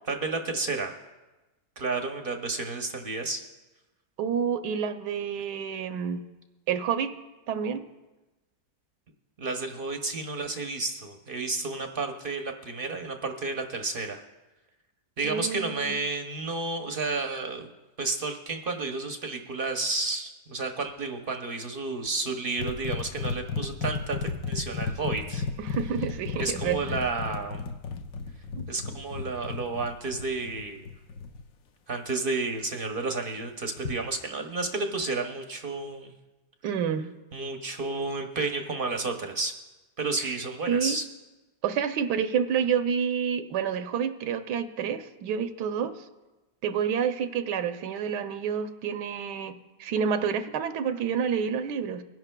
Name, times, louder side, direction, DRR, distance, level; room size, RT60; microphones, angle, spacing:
voice 1, 0.1-0.9 1.8-3.4 9.4-14.2 15.2-17.7 18.0-25.5 26.4-27.7 28.7-30.9 31.9-36.1 37.3-39.5 40.0-41.0, right 3 dB, 50° right, 4 dB, 0.7 m, -31 dB
voice 2, 4.2-6.2 6.7-7.1 7.5-7.8 15.2-16.0 25.6-26.9 28.6-28.7 36.6-37.1 40.2-40.3 40.7-41.0 41.6-45.9 46.6-52.0, right 7 dB, 85° right, 9 dB, 1.2 m, -29 dB
sound 1, 22.6-31.4 33.8-34.2, left 5 dB, 65° left, 0.9 m, -34 dB
23.0 x 10.5 x 2.2 m, 1.1 s
omnidirectional pair, 1.8 m